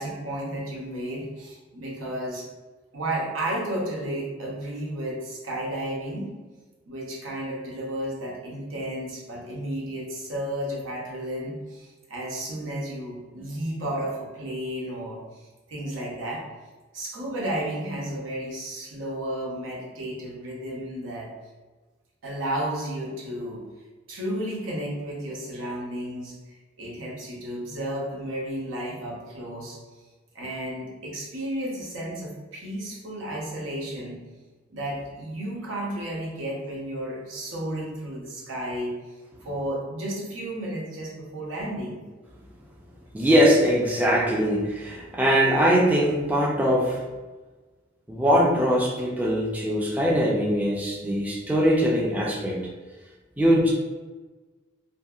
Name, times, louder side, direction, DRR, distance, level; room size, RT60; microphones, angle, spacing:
voice 1, 0.0-2.5 2.9-6.3 6.9-16.4 16.9-21.3 22.2-23.6 24.1-26.4 26.8-29.8 30.3-34.2 34.7-39.0 39.4-42.0, right 1 dB, 90° right, -3 dB, 0.8 m, -32 dB
voice 2, 43.1-47.0 48.1-52.6 53.4-53.7, equal, 10° right, -3 dB, 0.3 m, -21 dB
2.7 x 2.6 x 2.3 m, 1.3 s
head